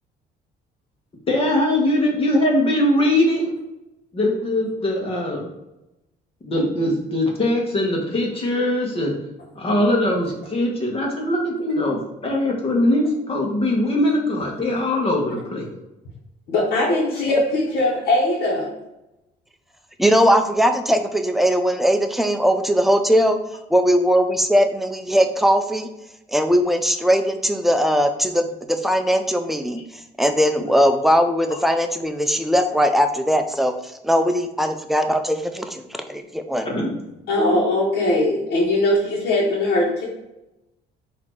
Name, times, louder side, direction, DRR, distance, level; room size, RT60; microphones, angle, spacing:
voice 1, 1.3-3.5 4.1-5.4 6.4-9.1 9.5-15.7 36.6-37.0, left 1 dB, 35° left, 0 dB, 1.3 m, -21 dB
voice 2, 16.5-18.7 37.3-40.0, left 1 dB, 70° left, -7 dB, 1.3 m, -20 dB
voice 3, 20.0-23.4 23.7-25.9 26.3-36.7, equal, ahead, 6 dB, 0.4 m, -20 dB
4.1 x 2.8 x 4.6 m, 0.92 s
cardioid pair, 110°, 17 cm